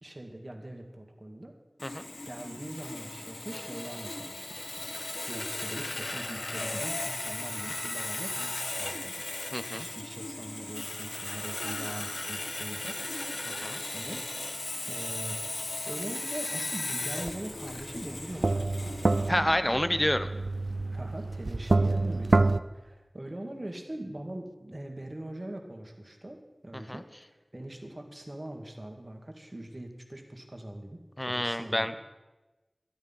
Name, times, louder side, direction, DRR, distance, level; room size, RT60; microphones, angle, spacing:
voice 1, 0.0-1.5 2.2-4.9 5.3-9.1 9.7-13.0 13.6-14.2 14.5-14.6 14.9-15.4 15.9-19.1 20.9-32.0, right 1 dB, 40° right, 2 dB, 2.1 m, -42 dB
Sawing, 1.8-19.3, left 2 dB, 85° left, 1.0 m, -36 dB
voice 2, 9.5-9.9 13.5-13.8 19.3-20.3 26.9-27.0 31.2-32.0, left 1 dB, 20° left, 11 dB, 0.7 m, -28 dB
sound 1, 17.3-17.4 17.8-22.6, right 2 dB, 80° right, 0.4 m, -27 dB
13.0 x 11.0 x 5.6 m, 1.1 s
wide cardioid pair, 55°, 0 cm